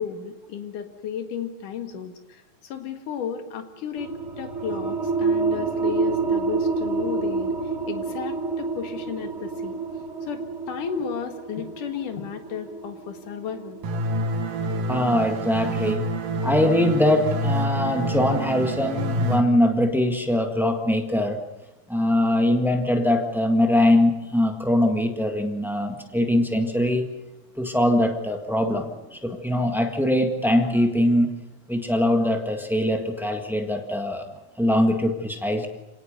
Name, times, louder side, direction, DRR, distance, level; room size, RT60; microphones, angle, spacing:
voice 1, 0.0-7.5 7.9-9.8 10.2-13.8, left 7 dB, 80° left, 6 dB, 3.3 m, -34 dB
sound 1, 4.0-15.2, right 4 dB, 50° right, 0.8 m, -28 dB
sound 2, 13.8-19.4, right 1 dB, 90° right, 3.3 m, -27 dB
voice 2, 14.9-16.1 16.4-21.4 21.9-27.1 27.6-31.4 31.7-34.2 34.6-35.7, left 1 dB, ahead, 3 dB, 0.5 m, -22 dB
26.5 x 18.0 x 6.7 m, 1.0 s
omnidirectional pair, 3.6 m